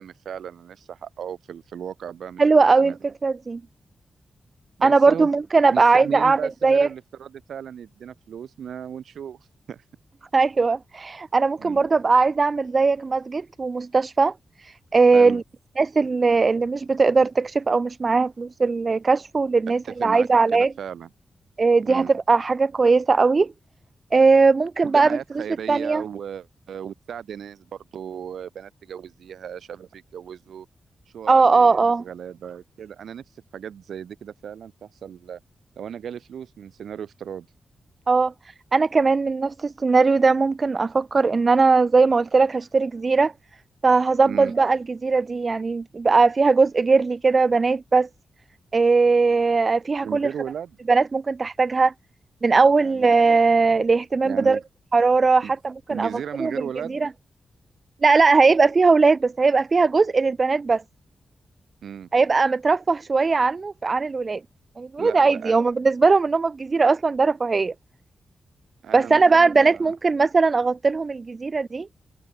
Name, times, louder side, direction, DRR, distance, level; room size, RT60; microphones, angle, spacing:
voice 1, 0.0-2.4 2.8-3.0 4.8-5.3 5.7-9.8 11.6-11.8 15.1-15.4 19.8-21.1 21.9-22.1 24.8-30.7 31.1-33.2 33.5-35.4 35.8-37.5 44.2-44.5 50.0-50.8 52.7-53.1 54.2-54.6 55.4-55.5 55.9-57.0 61.8-62.1 65.0-65.6 68.8-69.9, right 8 dB, 90° right, 1.2 m, -36 dB
voice 2, 2.4-2.9 3.2-3.6 4.8-6.9 10.3-14.3 14.9-15.4 15.8-20.7 21.6-23.5 24.1-25.2 25.7-26.0 31.3-32.0 38.1-38.3 38.7-43.3 43.8-48.1 48.7-50.3 50.9-51.9 52.4-54.6 54.9-56.1 56.4-56.5 56.9-57.1 58.0-60.8 62.1-64.4 64.8-67.7 68.9-71.9, right 4 dB, 40° right, 0.5 m, -19 dB
cardioid pair, 85°, 0 cm